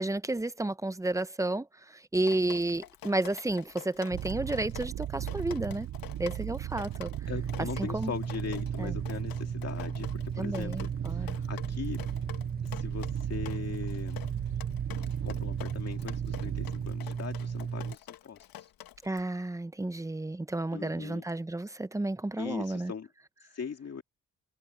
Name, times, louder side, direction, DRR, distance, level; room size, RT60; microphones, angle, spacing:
voice 1, 0.0-5.9 6.2-7.1 7.8-8.1 8.8-9.0 10.4-11.4 19.0-22.9, right 2 dB, 10° right, 0.7 m, -32 dB
Drip, 2.2-19.2, left 12 dB, 85° left, 1.5 m, -47 dB
sound 1, 4.1-17.0, right 13 dB, 55° right, 0.6 m, -38 dB
sound 2, 7.2-18.0, right 6 dB, 30° right, 1.1 m, -36 dB
voice 2, 7.3-12.0 12.6-14.2 15.2-18.7 20.7-21.2 22.4-23.1 23.4-24.0, left 6 dB, 45° left, 2.4 m, -40 dB
cardioid pair, 80°, 34 cm